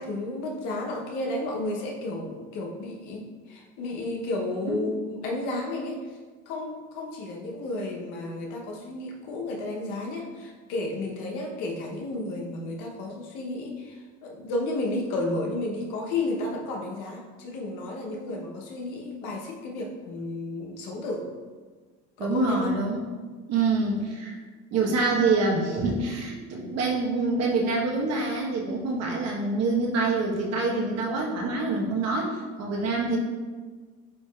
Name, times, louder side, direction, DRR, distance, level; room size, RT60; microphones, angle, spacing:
voice 1, 0.0-6.2 6.5-21.3 22.2-22.8, left 2 dB, 80° left, 0 dB, 0.9 m, -32 dB
voice 2, 22.2-23.1 23.5-24.4 24.7-33.2, right 3 dB, 60° right, -2 dB, 1.2 m, -26 dB
8.2 x 2.7 x 2.4 m, 1.4 s
supercardioid pair, 95°, 30 cm